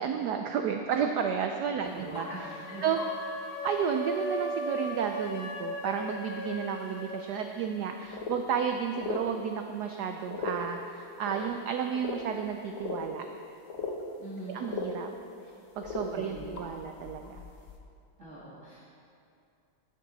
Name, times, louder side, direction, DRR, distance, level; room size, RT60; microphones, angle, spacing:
voice 1, 0.0-2.3 2.8-3.0 3.6-13.2 14.5-15.1 15.8-17.5, right 7 dB, 90° right, 5 dB, 0.8 m, -32 dB
voice 2, 1.8-2.4 2.7-2.8 14.2-14.6 16.1-16.6 18.2-18.8, right 1 dB, 40° right, -8 dB, 1.6 m, -43 dB
sound 1, 2.1-2.2 3.0-3.1 3.5-3.6 3.9-4.0 6.1-6.2 7.3-7.4 7.8-7.9 8.1-8.6 9.0-9.3 10.3-10.7 11.2-11.5 11.9-13.0 13.3-13.4 13.7-14.0 14.3-14.4 14.6-14.9 15.8-17.8, left 4 dB, 50° left, 1.0 m, -37 dB
sound 2, 2.2-7.2, right 1 dB, 85° left, 1.9 m, -36 dB
10.5 x 9.0 x 4.0 m, 2.6 s
omnidirectional pair, 2.3 m